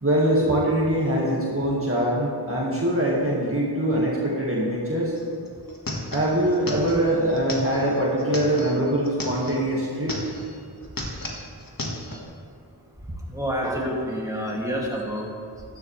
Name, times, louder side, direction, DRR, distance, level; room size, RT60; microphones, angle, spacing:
voice 1, 0.0-5.1 6.1-10.2, right 1 dB, 35° right, -5 dB, 1.9 m, -23 dB
sound 1, 5.2-5.3 5.5-9.6 10.0-10.6 10.8-12.2, left 1 dB, 55° left, 1.7 m, -34 dB
voice 2, 13.3-15.3, equal, 10° right, -4 dB, 2.5 m, -28 dB
14.5 x 11.0 x 3.3 m, 2.4 s
wide cardioid pair, 40°, 41 cm